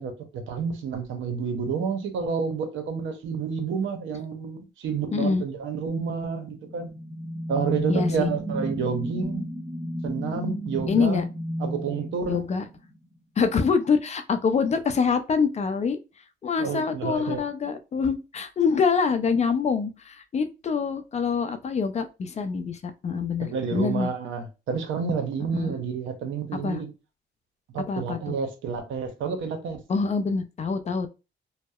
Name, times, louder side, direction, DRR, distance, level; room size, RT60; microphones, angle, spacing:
voice 1, 0.0-6.9 7.5-9.5 10.0-11.3 11.6-12.5 16.6-17.4 23.4-26.9 27.7-29.8, right 6 dB, 75° right, 0.7 m, -29 dB
voice 2, 5.1-5.4 7.9-8.3 10.9-11.2 12.3-12.7 13.4-16.0 16.4-24.1 25.5-25.8 26.6-26.8 27.9-28.3 29.9-31.1, left 5 dB, 35° left, 0.4 m, -25 dB
sound 1, 6.4-13.0, equal, 10° right, 0.6 m, -32 dB
2.7 x 2.0 x 2.2 m
cardioid pair, 90°, 20 cm